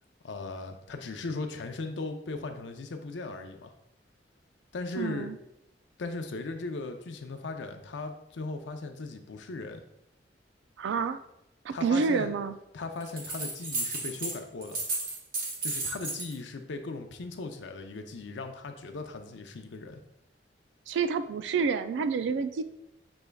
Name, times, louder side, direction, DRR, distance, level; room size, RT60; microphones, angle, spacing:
voice 1, 0.2-3.7 4.7-5.3 6.0-9.8 11.7-12.3 12.7-14.8 15.6-20.0, left 3 dB, 85° left, 6 dB, 0.5 m, -38 dB
voice 2, 5.0-5.4 10.8-11.2 11.6-12.5 20.9-22.6, right 5 dB, 80° right, 11 dB, 0.3 m, -28 dB
sound 1, 13.0-14.4 14.6-16.3, right 2 dB, 55° right, 1.1 m, -33 dB
6.1 x 3.3 x 2.3 m, 0.81 s
head